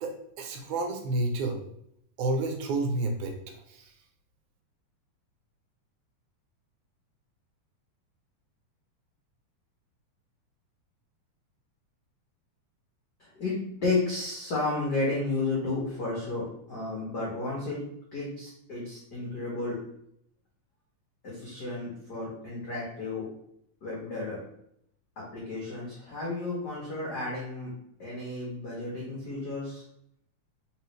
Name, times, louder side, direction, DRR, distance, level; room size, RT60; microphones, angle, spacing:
voice 1, 0.0-1.6 2.2-3.4 3.7-3.9, right 2 dB, 80° right, 3 dB, 2.1 m, -30 dB
voice 2, 13.2-13.6 13.8-17.8 18.1-19.8 21.2-23.2 23.8-24.4 25.3-27.7 28.0-29.8, left 3 dB, 75° left, -5 dB, 0.9 m, -32 dB
4.0 x 3.7 x 3.1 m, 0.73 s
omnidirectional pair, 3.5 m